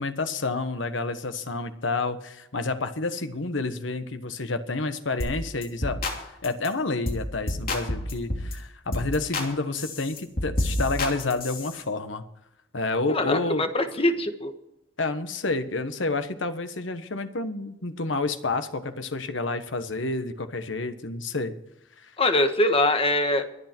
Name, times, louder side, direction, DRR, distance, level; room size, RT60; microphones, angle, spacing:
voice 1, 0.0-6.0 6.4-12.2 12.7-13.6 15.0-21.5, left 3 dB, 85° left, 9 dB, 1.3 m, -29 dB
sound 1, 5.2-5.4 5.6-6.2 6.4-6.7 7.0-7.2 7.5-8.5 8.9-9.5 9.7-11.8, left 1 dB, 50° left, 2.8 m, -29 dB
voice 2, 13.1-14.5 22.2-23.5, left 1 dB, 30° left, 7 dB, 1.4 m, -23 dB
23.0 x 8.4 x 4.5 m, 0.84 s
head